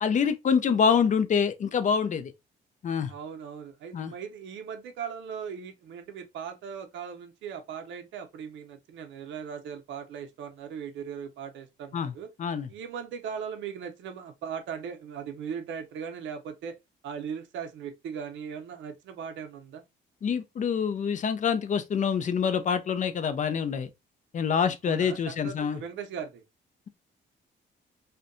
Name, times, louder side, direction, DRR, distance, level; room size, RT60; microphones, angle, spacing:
voice 1, 0.0-2.3 2.8-3.1 3.9-4.1 11.9-12.1 12.4-12.7 20.2-23.9 24.3-25.8, left 6 dB, 40° left, 0.4 m, -26 dB
voice 2, 3.1-12.3 12.7-16.8 17.0-19.8 24.8-26.4, right 7 dB, 70° right, 0.5 m, -38 dB
2.6 x 2.2 x 2.4 m
cardioid pair, 90°, 20 cm